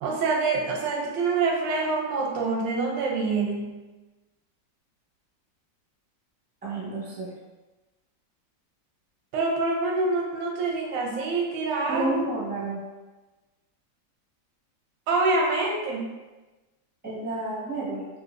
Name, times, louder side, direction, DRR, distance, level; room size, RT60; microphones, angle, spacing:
voice 1, 0.0-3.8 9.3-12.2 15.1-16.1, right 3 dB, 90° right, -1 dB, 1.4 m, -26 dB
voice 2, 6.6-7.3 11.9-12.8 17.0-18.1, right 2 dB, 10° right, -7 dB, 0.5 m, -30 dB
3.8 x 2.7 x 2.5 m, 1.2 s
omnidirectional pair, 1.9 m